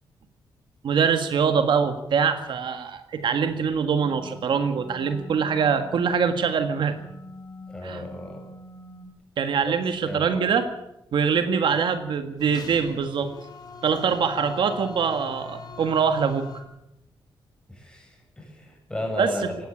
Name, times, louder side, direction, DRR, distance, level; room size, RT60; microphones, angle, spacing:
voice 1, 0.8-7.0 7.8-8.0 9.4-10.7 11.1-13.3 13.8-16.5 19.2-19.3, right 6 dB, 65° right, 8 dB, 1.7 m, -23 dB
sound 1, 4.0-9.1, left 1 dB, 25° left, 2.7 m, -44 dB
voice 2, 7.7-8.4 9.6-9.7 10.0-10.4 17.7-19.7, left 1 dB, 10° left, 2 dB, 7.9 m, -34 dB
sound 2, 12.4-16.6, left 3 dB, 50° left, 3.1 m, -40 dB
19.0 x 16.5 x 8.7 m, 0.85 s
wide cardioid pair, 135°, 9 cm